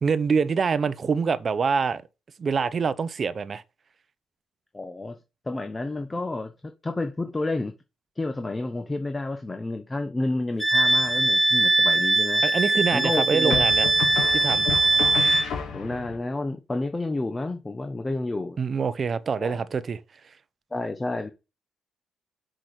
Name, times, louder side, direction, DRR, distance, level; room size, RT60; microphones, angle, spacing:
voice 1, 0.0-2.0 2.4-3.6 12.4-13.9 14.3-14.7 18.6-20.0, right 5 dB, 45° right, 0.8 m, -25 dB
voice 2, 4.7-5.2 5.5-6.5 6.8-7.7 8.2-12.4 12.9-13.7 15.2-15.3 15.7-18.6 19.4-19.6 20.7-21.3, left 2 dB, 20° left, 1.0 m, -30 dB
Wind instrument woodwind instrument, 10.6-15.5, right 2 dB, 10° right, 0.6 m, -21 dB
sound 1, 10.8-11.4 13.5-16.2, left 7 dB, 80° left, 2.4 m, -32 dB
6.1 x 5.1 x 6.0 m
cardioid pair, 90°, 0 cm